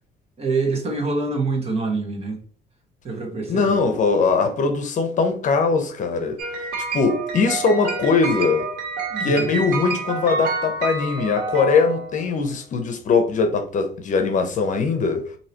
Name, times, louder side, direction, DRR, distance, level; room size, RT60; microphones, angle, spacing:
voice 1, 0.4-2.4 3.0-3.8 9.1-9.5, right 3 dB, 35° right, 1.2 m, -25 dB
voice 2, 3.5-6.7 6.9-8.7 9.2-15.4, left 4 dB, 50° left, 0.8 m, -21 dB
sound 1, 6.4-12.4, right 3 dB, 85° right, 1.5 m, -28 dB
4.7 x 2.8 x 2.8 m
cardioid pair, 110°, 17 cm